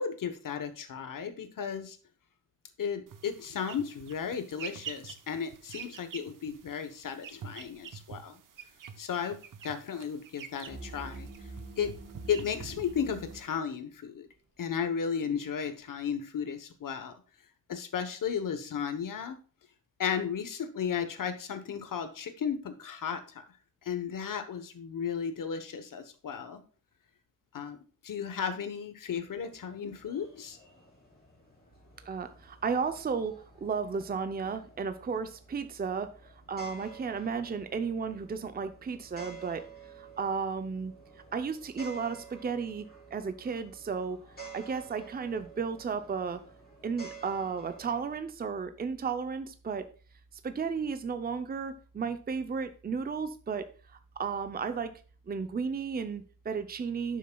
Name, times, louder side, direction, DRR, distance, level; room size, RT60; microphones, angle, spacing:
voice 1, 0.0-2.0 2.8-8.4 9.0-9.4 9.6-11.3 11.8-11.9 12.3-14.3 14.6-17.1 17.7-19.4 20.0-23.4 23.8-26.6 27.5-27.8 28.0-30.6, left 7 dB, 75° left, 9 dB, 1.1 m, -34 dB
sound 1, 3.1-13.5, right 7 dB, 75° right, 0.9 m, -47 dB
sound 2, 10.7-13.4, right 2 dB, 55° right, 4.1 m, -45 dB
sound 3, 29.2-48.2, right 5 dB, 30° left, 3.3 m, -51 dB
voice 2, 32.1-39.6 39.9-40.9 41.3-46.4 46.8-49.9 50.4-54.9 55.3-57.2, right 5 dB, 30° right, 9 dB, 0.6 m, -34 dB
11.0 x 6.2 x 2.3 m, 0.37 s
wide cardioid pair, 135°, 32 cm